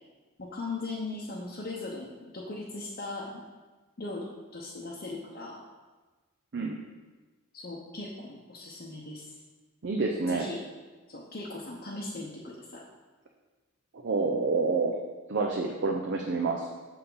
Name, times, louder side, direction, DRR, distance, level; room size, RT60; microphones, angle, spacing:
voice 1, 0.4-3.4 4.0-5.6 7.5-9.3 10.3-10.6 11.1-12.8 15.6-15.8 16.5-16.7, left 2 dB, 45° left, -4 dB, 0.8 m, -39 dB
voice 2, 9.8-10.5 14.0-15.0 15.3-16.7, right 3 dB, 50° right, 1 dB, 0.5 m, -28 dB
6.9 x 5.8 x 3.9 m, 1.3 s
head